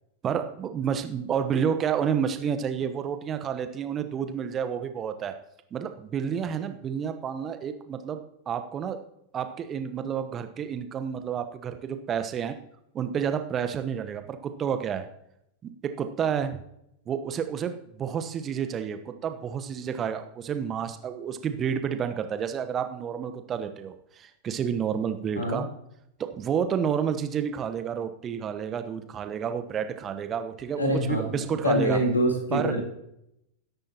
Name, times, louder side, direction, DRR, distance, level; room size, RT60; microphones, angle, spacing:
voice 1, 0.2-5.3 5.7-8.2 8.5-9.0 9.3-12.6 12.9-15.1 15.6-16.6 17.1-25.7 26.2-32.0 32.5-32.7, right 8 dB, 25° right, 8 dB, 1.1 m, -30 dB
voice 2, 30.8-31.2 31.6-32.8, equal, 75° left, 2 dB, 3.7 m, -25 dB
20.5 x 10.5 x 3.0 m, 0.79 s
figure-of-eight pair, 90°, 0 cm